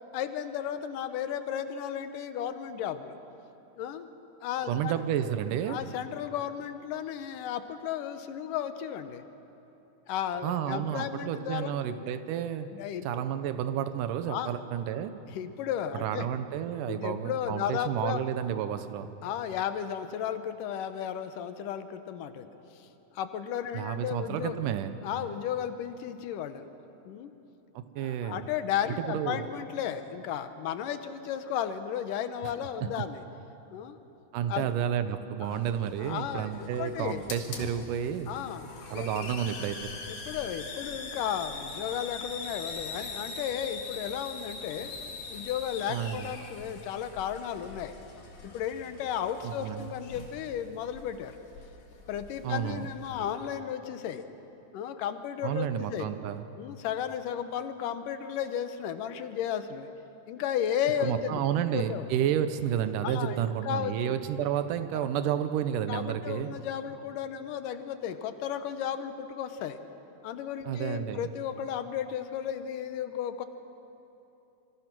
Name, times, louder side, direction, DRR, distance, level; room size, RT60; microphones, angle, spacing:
voice 1, 0.1-3.2 3.8-4.1 4.4-5.0 5.7-9.2 10.1-11.7 12.7-13.1 14.3-14.5 15.3-16.3 16.9-18.2 19.2-22.9 23.1-24.6 25.0-26.7 27.1-27.3 28.0-33.2 33.7-34.0 34.5-34.7 35.4-35.6 36.0-37.3 38.3-38.7 38.9-39.3 40.1-44.9 45.3-47.9 48.4-51.4 52.1-54.3 54.7-56.1 56.6-59.9 60.3-62.0 63.0-64.1 64.9-65.0 65.9-69.8 70.2-73.5, left 9 dB, 85° left, 10 dB, 2.6 m, -34 dB
voice 2, 4.7-5.8 10.4-12.7 13.0-15.1 15.9-19.1 23.7-25.0 27.7-28.5 29.0-29.5 32.8-32.9 34.3-38.3 38.9-39.8 45.9-46.4 49.4-49.9 52.4-52.9 55.4-56.5 61.0-66.5 70.6-71.3, right 9 dB, 85° right, 11 dB, 2.5 m, -31 dB
Hiss, 35.4-53.4, left 4 dB, 70° left, 3.2 m, -43 dB
26.0 x 23.5 x 6.1 m, 3.0 s
omnidirectional pair, 3.7 m